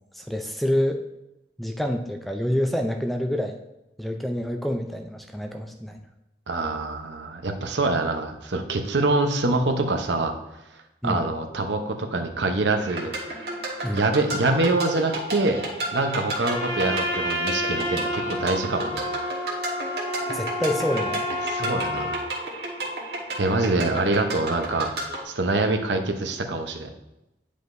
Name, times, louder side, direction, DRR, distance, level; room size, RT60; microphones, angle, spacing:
voice 1, 0.1-1.0 1.6-3.6 4.0-6.0 11.0-11.2 13.8-14.1 20.3-21.2 21.6-21.7, equal, ahead, 4 dB, 0.4 m, -27 dB
voice 2, 6.5-10.3 11.0-13.1 13.9-15.6 15.9-19.1 21.4-22.2 23.4-24.9 25.2-26.9, right 2 dB, 85° right, 5 dB, 0.8 m, -25 dB
sound 1, 12.8-25.2, right 1 dB, 65° right, 1.4 m, -32 dB
Trumpet, 16.4-22.2, left 1 dB, 45° left, 2.4 m, -30 dB
9.6 x 5.1 x 2.6 m, 0.93 s
head